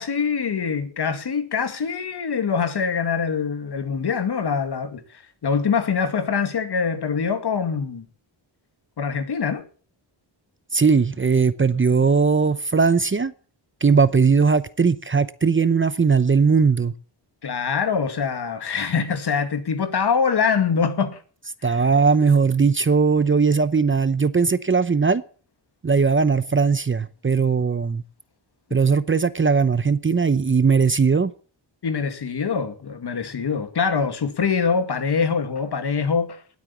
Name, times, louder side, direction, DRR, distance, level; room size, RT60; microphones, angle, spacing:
voice 1, 0.0-8.1 9.0-9.6 17.4-21.2 21.6-21.8 31.8-36.4, left 6 dB, 60° left, 2.3 m, -24 dB
voice 2, 10.7-13.3 13.8-16.9 21.6-25.2 25.8-28.0 28.7-31.3, right 5 dB, 25° right, 0.8 m, -19 dB
19.0 x 8.7 x 7.2 m
wide cardioid pair, 115°, 45 cm